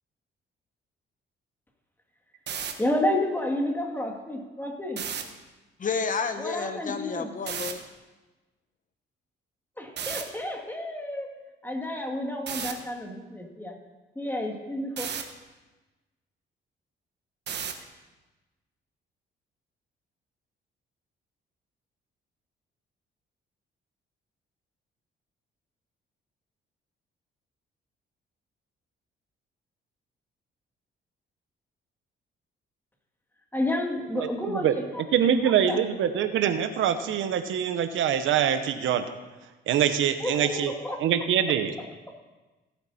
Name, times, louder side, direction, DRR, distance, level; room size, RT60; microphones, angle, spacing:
sound 1, 2.3-2.7 4.9-5.2 7.5-7.7 10.0-10.2 12.5-12.7 15.0-15.2 17.5-17.8, right 8 dB, 60° right, 1.2 m, -32 dB
voice 1, 2.8-5.0 6.4-7.3 9.8-11.3 11.6-13.8 14.2-15.1 33.5-35.8 40.2-41.0 41.8-42.2, left 1 dB, 10° left, 2 dB, 2.2 m, -31 dB
voice 2, 5.8-7.8, left 5 dB, 40° left, 9 dB, 0.8 m, -30 dB
voice 3, 34.2-34.7 35.1-39.0 39.7-40.7 41.0-41.7, right 9 dB, 80° right, 10 dB, 0.9 m, -24 dB
17.5 x 8.0 x 4.3 m, 1.2 s
cardioid pair, 90°, 20 cm